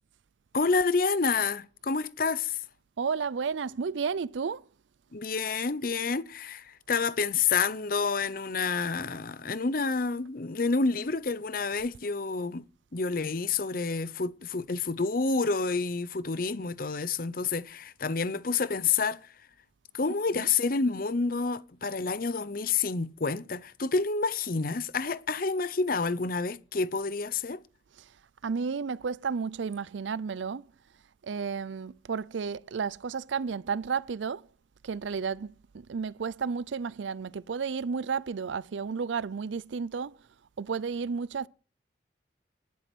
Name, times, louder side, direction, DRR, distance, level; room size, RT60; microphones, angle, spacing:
voice 1, 0.5-2.6 5.1-12.6 12.9-19.2 19.9-27.6, left 4 dB, 50° left, 0.7 m, -29 dB
voice 2, 3.0-4.6 20.3-20.5 28.0-28.1 28.4-30.7 31.2-34.5 34.8-40.2 40.6-41.5, right 5 dB, 85° right, 0.5 m, -32 dB
11.5 x 9.6 x 6.2 m
head